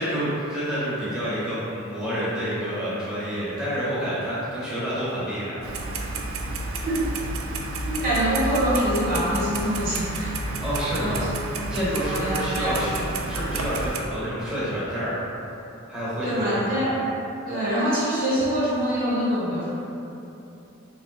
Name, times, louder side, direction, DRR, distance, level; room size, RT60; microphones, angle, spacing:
voice 1, 0.0-5.5 10.6-11.3 11.7-15.1 15.9-16.8, equal, 5° right, -11 dB, 0.9 m, -28 dB
Clock, 5.6-14.0, right 2 dB, 75° right, 0.4 m, -30 dB
voice 2, 7.8-10.4 10.9-11.3 11.7-13.0 16.2-17.0 17.5-19.7, equal, 45° right, -8 dB, 0.9 m, -25 dB
3.1 x 2.8 x 3.8 m, 2.9 s
head